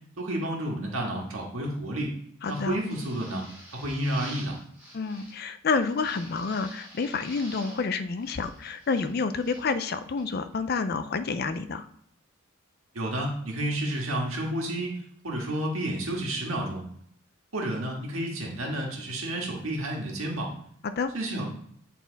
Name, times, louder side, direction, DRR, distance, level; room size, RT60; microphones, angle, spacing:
voice 1, 0.2-2.1 2.5-3.4 3.7-4.6 12.9-14.9 15.2-16.8 17.5-20.5 21.1-21.5, right 1 dB, 80° right, -1 dB, 1.7 m, -30 dB
voice 2, 2.4-2.8 4.9-11.9 20.8-21.1, left 4 dB, 45° left, 11 dB, 0.4 m, -29 dB
sound 1, 2.4-5.4 5.8-7.9 8.2-9.7 10.2-10.3, equal, 5° right, 2.8 m, -48 dB
8.4 x 4.2 x 4.0 m, 0.66 s
head